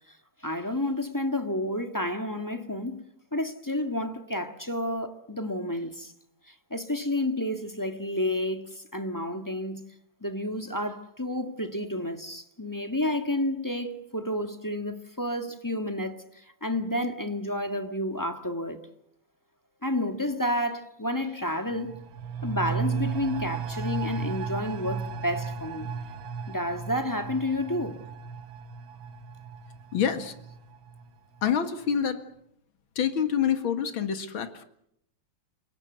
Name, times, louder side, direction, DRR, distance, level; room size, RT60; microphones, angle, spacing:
voice 1, 0.4-3.0 3.3-6.1 6.5-9.9 10.2-18.8 19.8-21.9 22.4-25.9 26.5-28.0, left 1 dB, 10° left, 1.5 m, -30 dB
sound 1, 21.7-31.1 31.4-31.5, right 6 dB, 75° right, 1.9 m, -35 dB
voice 2, 29.9-30.3 31.4-32.2 33.0-34.6, left 8 dB, 80° left, 2.6 m, -26 dB
29.0 x 18.0 x 8.0 m
omnidirectional pair, 2.2 m